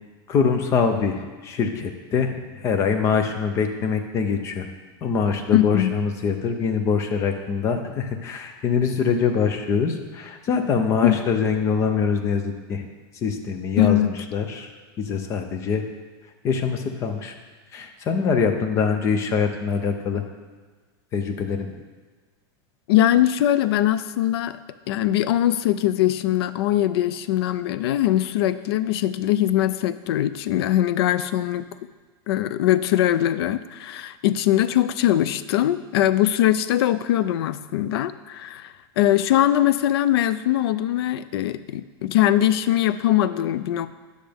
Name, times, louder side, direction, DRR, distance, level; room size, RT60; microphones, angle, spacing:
voice 1, 0.3-4.7 5.0-12.9 13.1-15.8 16.4-17.3 17.7-20.2 21.1-21.8, left 5 dB, 20° left, 6 dB, 0.6 m, -24 dB
voice 2, 5.5-5.9 11.0-11.2 13.8-14.1 22.9-24.6 24.9-31.7 32.3-43.9, left 13 dB, 75° left, 14 dB, 0.4 m, -21 dB
9.9 x 6.4 x 3.5 m, 1.4 s
supercardioid pair, 175°, 13 cm